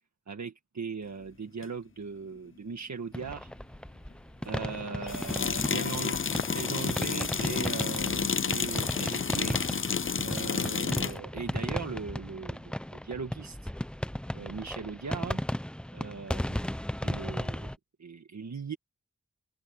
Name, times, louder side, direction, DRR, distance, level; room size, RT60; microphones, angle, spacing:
voice 1, 0.3-3.5 4.4-6.2 6.5-9.6 10.2-13.7 14.3-15.4 15.9-16.7 17.0-17.7 18.0-18.8, right 5 dB, 70° right, 1.7 m, -39 dB
sound 1, 1.6-1.7 5.1-11.2, left 6 dB, 45° left, 0.7 m, -30 dB
sound 2, 3.1-17.8, equal, 5° left, 0.7 m, -36 dB
open air
wide cardioid pair, 100°, 29 cm